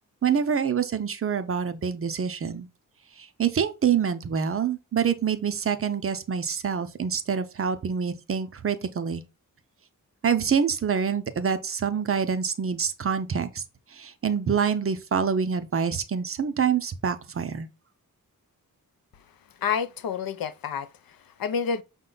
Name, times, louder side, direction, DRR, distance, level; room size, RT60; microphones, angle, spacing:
voice 1, 0.2-2.7 3.2-9.2 10.2-13.6 13.9-17.7, right 7 dB, 40° right, 0.5 m, -26 dB
voice 2, 19.6-21.8, left 6 dB, 85° left, 0.5 m, -29 dB
5.9 x 2.2 x 3.8 m
wide cardioid pair, 160°, 34 cm